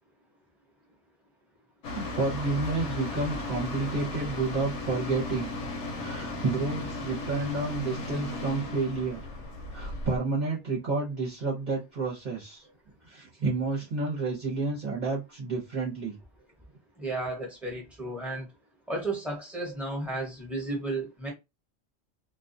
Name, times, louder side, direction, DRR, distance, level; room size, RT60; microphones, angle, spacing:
sound 1, 1.8-10.2, left 2 dB, 85° left, 1.0 m, -35 dB
voice 1, 1.9-5.6 6.0-9.2 9.7-12.6 13.0-16.2, right 3 dB, 45° right, 0.8 m, -30 dB
voice 2, 17.0-18.5 18.9-21.3, right 2 dB, ahead, 0.9 m, -33 dB
2.3 x 2.2 x 2.5 m
omnidirectional pair, 1.2 m